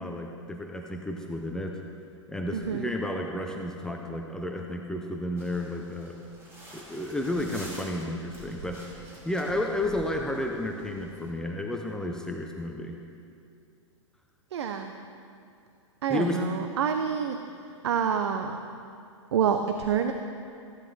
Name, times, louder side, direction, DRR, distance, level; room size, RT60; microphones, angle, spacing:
voice 1, 0.0-1.8 2.3-6.3 6.7-9.0 9.2-13.0 16.1-16.4, left 1 dB, 5° left, 1 dB, 0.6 m, -32 dB
voice 2, 2.5-2.9 14.5-14.9 16.0-17.4 17.8-18.6 19.3-20.1, right 7 dB, 60° right, 6 dB, 0.6 m, -27 dB
sound 1, 5.4-11.3, equal, 15° right, 2.9 m, -47 dB
14.5 x 10.5 x 3.3 m, 2.4 s
figure-of-eight pair, 105°, 16 cm